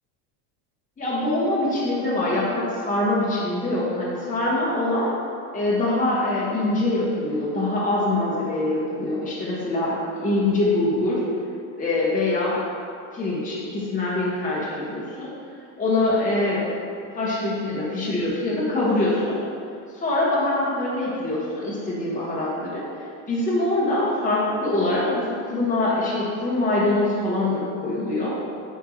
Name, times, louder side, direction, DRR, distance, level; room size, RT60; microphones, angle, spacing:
voice 1, 1.0-5.1 5.5-11.2 11.7-12.6 13.1-15.3 15.8-16.7 17.1-19.4 19.9-22.8 23.3-28.3, left 2 dB, 20° left, -7 dB, 1.4 m, -24 dB
9.6 x 3.6 x 3.0 m, 2.4 s
supercardioid pair, 120°, 39 cm